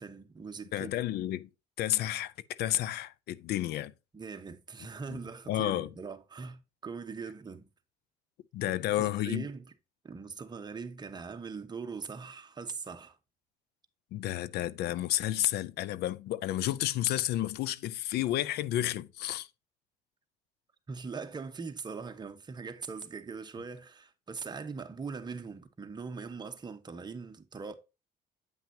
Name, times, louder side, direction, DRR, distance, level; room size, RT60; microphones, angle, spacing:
voice 1, 0.0-0.9 4.1-7.7 8.6-9.7 10.0-13.2 20.9-27.7, right 5 dB, 25° right, 1.1 m, -41 dB
voice 2, 0.7-1.5 1.8-3.9 5.1-5.2 5.5-5.9 8.5-9.5 14.1-19.5, left 13 dB, 75° left, 0.5 m, -31 dB
9.0 x 5.9 x 2.8 m
cardioid pair, 110°, 17 cm